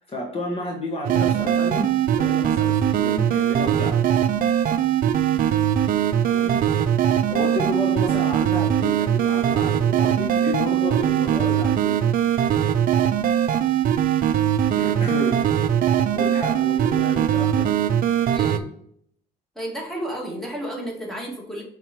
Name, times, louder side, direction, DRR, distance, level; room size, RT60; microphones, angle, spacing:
voice 1, 0.0-4.1 6.1-6.6 7.3-12.1 13.6-13.8 14.8-15.5 16.1-17.8, left 1 dB, 35° left, -1 dB, 1.4 m, -31 dB
sound 1, 1.0-18.6, right 10 dB, 55° right, 0.5 m, -21 dB
voice 2, 18.3-18.7 19.6-21.6, right 1 dB, ahead, -3 dB, 2.2 m, -32 dB
5.9 x 4.0 x 4.5 m, 0.67 s
cardioid pair, 110°, 17 cm